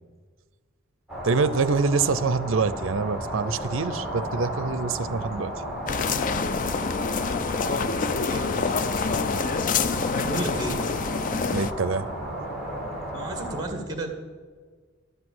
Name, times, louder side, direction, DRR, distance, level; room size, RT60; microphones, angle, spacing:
sound 1, 1.1-13.6, equal, ahead, 2.9 m, -34 dB
voice 1, 1.2-5.5 11.5-12.1, right 4 dB, 70° right, 15 dB, 0.5 m, -25 dB
sound 2, 5.9-11.7, left 5 dB, 40° left, 0.4 m, -27 dB
voice 2, 8.3-8.8 10.2-10.8 13.1-14.1, right 2 dB, 20° right, 5 dB, 1.6 m, -33 dB
11.0 x 8.3 x 7.8 m, 1.5 s
head